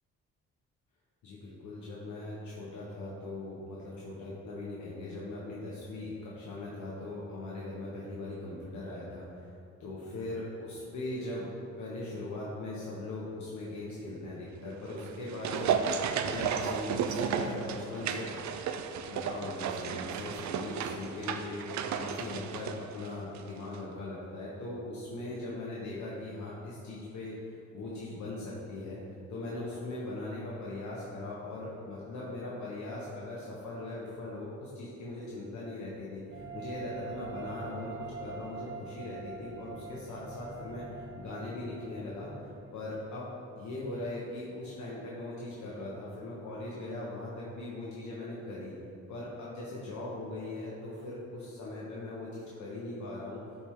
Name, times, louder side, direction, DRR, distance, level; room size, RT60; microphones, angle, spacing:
voice 1, 1.2-9.5 9.8-11.5 11.8-18.3 19.1-27.4 27.7-29.0 29.3-43.3 43.6-48.8 49.1-53.4, left 2 dB, 70° left, -6 dB, 1.5 m, -40 dB
sound 1, 14.9-23.5 23.7-23.8, right 7 dB, 70° right, 0.6 m, -33 dB
sound 2, 36.3-42.8, right 5 dB, 40° right, 1.5 m, -44 dB
12.0 x 4.8 x 3.8 m, 2.6 s
cardioid pair, 90°, 30 cm